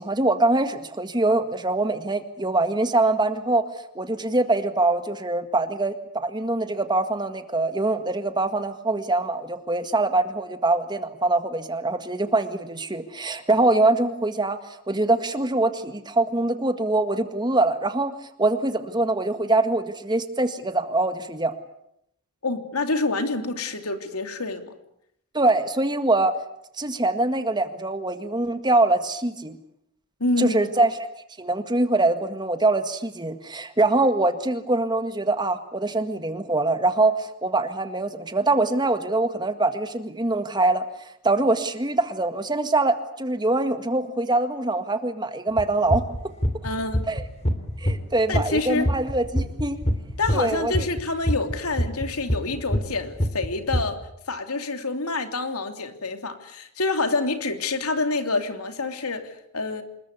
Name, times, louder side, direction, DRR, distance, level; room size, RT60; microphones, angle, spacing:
voice 1, 0.0-3.6 3.9-14.6 14.9-18.1 18.4-21.5 25.3-26.3 26.8-29.6 30.4-30.9 31.4-40.8 41.2-46.0 47.1-47.2 47.8-49.8 50.3-50.8, right 2 dB, 20° right, 9 dB, 1.8 m, -23 dB
voice 2, 22.4-24.7 30.2-30.6 46.6-47.1 48.3-48.9 50.2-54.0 54.3-59.8, left 3 dB, 85° left, 7 dB, 3.1 m, -27 dB
sound 1, 45.6-48.1 48.3-50.4 50.7-52.9 53.2-53.8, equal, 30° left, 2.9 m, -23 dB
27.0 x 21.5 x 8.4 m, 0.75 s
head